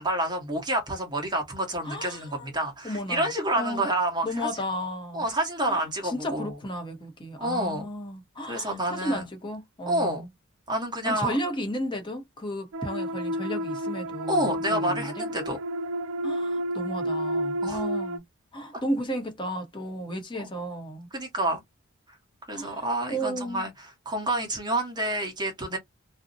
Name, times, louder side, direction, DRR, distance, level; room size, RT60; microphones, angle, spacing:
voice 1, 0.0-4.5 5.1-6.5 7.4-7.9 8.5-9.2 9.9-10.3 10.7-11.4 14.3-15.6 17.6-17.8 20.4-20.5 21.1-21.6 22.5-23.7 24.1-25.8, right 1 dB, 20° right, 1.0 m, -28 dB
voice 2, 1.8-2.5 2.8-3.9 4.2-5.3 5.6-10.3 11.0-15.3 16.2-18.2 18.5-21.1 22.5-23.6, equal, 25° left, 0.8 m, -34 dB
sound 1, 12.7-18.2, right 1 dB, 70° right, 0.3 m, -31 dB
2.6 x 2.0 x 2.5 m
head